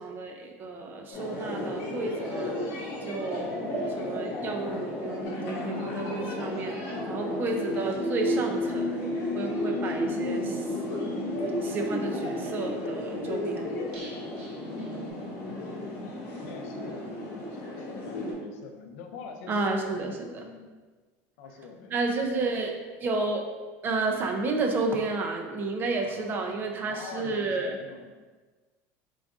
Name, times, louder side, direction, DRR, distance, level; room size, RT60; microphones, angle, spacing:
voice 1, 0.0-2.6 3.0-3.6 3.9-6.7 7.1-9.0 9.3-10.6 11.6-13.6 18.5-18.6 19.5-20.5 21.9-23.5 23.8-27.8, right 3 dB, 30° right, 3 dB, 0.4 m, -31 dB
sound 1, 1.1-18.3, left 1 dB, 65° left, 1.0 m, -35 dB
sound 2, 5.2-15.1, left 1 dB, 35° left, 0.7 m, -34 dB
sound 3, 13.9-15.7 16.0-16.1 16.4-16.5, right 1 dB, 60° right, 0.9 m, -50 dB
voice 2, 15.3-20.7 21.4-21.9 26.0-26.6 26.9-28.1, left 5 dB, 85° left, 4 dB, 0.5 m, -45 dB
3.9 x 3.5 x 2.4 m, 1.3 s
cardioid pair, 155°, 7 cm